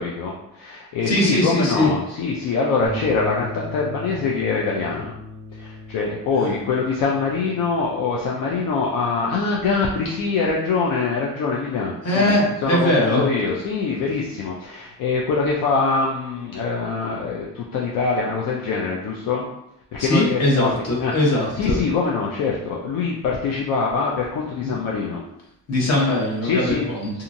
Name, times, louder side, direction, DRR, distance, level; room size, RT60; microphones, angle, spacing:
voice 1, 0.0-5.1 5.5-19.5 19.9-20.7 21.0-25.2 26.4-26.9, left 4 dB, 70° left, -3 dB, 0.5 m, -24 dB
voice 2, 1.1-1.9 6.4-6.5 12.0-13.2 20.0-21.7 24.6-24.7 25.7-27.2, left 1 dB, 45° left, -4 dB, 1.1 m, -21 dB
sound 1, 2.9-11.3, left 2 dB, 20° right, 0.5 m, -39 dB
2.8 x 2.4 x 2.6 m, 0.82 s
cardioid pair, 135°, 35 cm